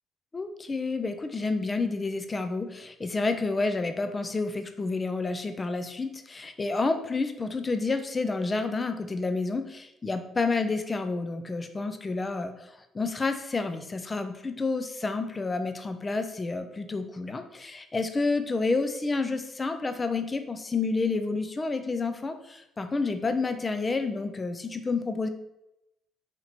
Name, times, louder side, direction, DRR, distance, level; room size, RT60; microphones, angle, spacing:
voice 1, 0.3-12.7 12.9-25.3, left 3 dB, 25° left, 8 dB, 0.5 m, -29 dB
4.4 x 2.9 x 4.0 m, 0.86 s
cardioid pair, 90°, 0 cm